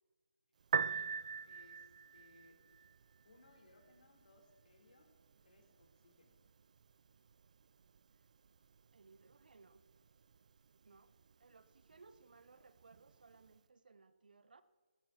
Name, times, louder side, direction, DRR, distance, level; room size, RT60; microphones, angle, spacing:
Piano, 0.6-13.6, right 6 dB, 50° right, 0.4 m, -46 dB
voice 1, 0.7-1.1 1.4-2.6 3.2-5.1 5.4-6.4, left 2 dB, 65° left, 3.9 m, -66 dB
voice 2, 8.9-9.8 10.8-11.1 11.4-14.6, right 4 dB, 65° right, 1.0 m, -63 dB
15.5 x 14.0 x 4.2 m
figure-of-eight pair, 150°, 5 cm